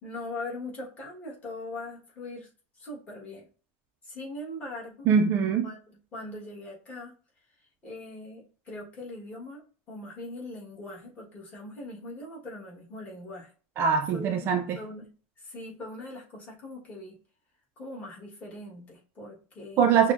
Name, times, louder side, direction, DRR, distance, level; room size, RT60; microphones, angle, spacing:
voice 1, 0.0-2.5 2.8-3.5 4.0-5.1 5.6-5.8 6.1-7.1 7.8-9.6 9.9-13.5 14.1-15.1 15.4-17.2 17.8-19.8, left 2 dB, 20° left, 1.2 m, -41 dB
voice 2, 5.1-5.7 13.8-14.8 19.8-20.1, right 6 dB, 35° right, 0.3 m, -23 dB
6.0 x 2.1 x 2.5 m
supercardioid pair, 165°, 7 cm